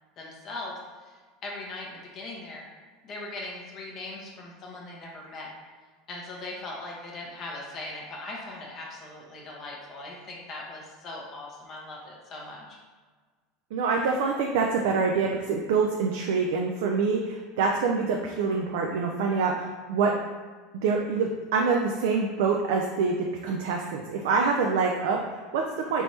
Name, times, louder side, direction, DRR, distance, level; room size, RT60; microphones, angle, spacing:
voice 1, 0.2-2.6 3.0-5.5 6.1-12.8, left 2 dB, 45° left, -2 dB, 0.9 m, -40 dB
voice 2, 13.7-20.1 20.8-26.0, right 4 dB, 75° right, 1 dB, 0.3 m, -26 dB
3.4 x 3.0 x 2.7 m, 1.4 s
hypercardioid pair, 95°, 0 cm